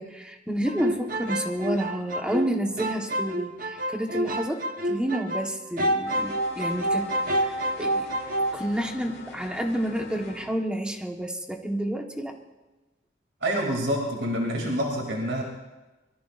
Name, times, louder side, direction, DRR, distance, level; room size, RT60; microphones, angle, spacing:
voice 1, 0.0-7.1 7.3-8.1 8.5-12.4, right 1 dB, 5° right, 2 dB, 1.3 m, -30 dB
sound 1, 0.7-5.5 5.8-8.5, right 1 dB, 50° right, 1.2 m, -28 dB
sound 2, 6.1-10.5, left 2 dB, 80° left, 5.0 m, -44 dB
voice 2, 13.4-15.4, equal, 85° right, 0 dB, 2.9 m, -27 dB
25.0 x 22.0 x 2.6 m, 1.1 s
head